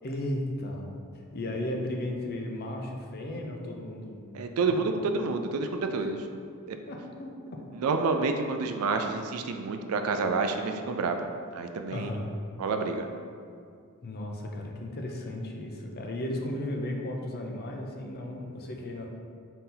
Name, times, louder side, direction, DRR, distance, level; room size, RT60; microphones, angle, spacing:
voice 1, 0.0-4.3 4.7-5.1 6.0-6.1 6.9-7.3 11.9-12.3 14.0-19.1, left 1 dB, 45° left, 1 dB, 0.5 m, -35 dB
voice 2, 4.3-6.2 6.7-6.8 7.7-11.3 11.5-12.1 12.6-13.1, right 4 dB, 75° right, 6 dB, 0.4 m, -29 dB
4.1 x 2.7 x 3.8 m, 2.2 s
head